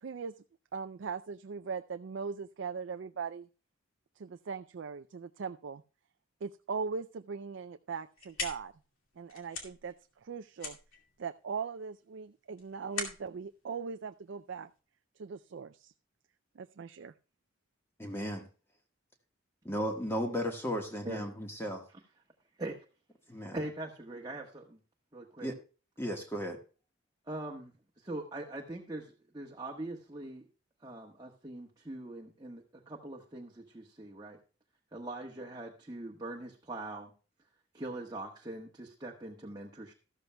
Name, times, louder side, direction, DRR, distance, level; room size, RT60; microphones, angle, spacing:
voice 1, 0.0-0.3 0.7-3.5 4.2-5.8 6.4-8.7 9.2-9.9 10.2-10.8 11.2-14.7 15.2-15.9 16.6-17.1, right 5 dB, 65° right, 9 dB, 0.4 m, -39 dB
sound 1, 7.9-14.8, left 4 dB, 85° left, 2.4 m, -43 dB
voice 2, 18.0-18.5 19.6-21.8 23.3-23.6 25.4-25.6 26.0-26.6, equal, 10° left, 3 dB, 1.4 m, -35 dB
voice 3, 23.5-24.8 25.1-25.5 27.3-30.5 30.8-34.4 34.9-37.1 37.7-39.9, right 2 dB, 20° right, -1 dB, 1.2 m, -42 dB
13.5 x 13.0 x 2.2 m, 0.35 s
head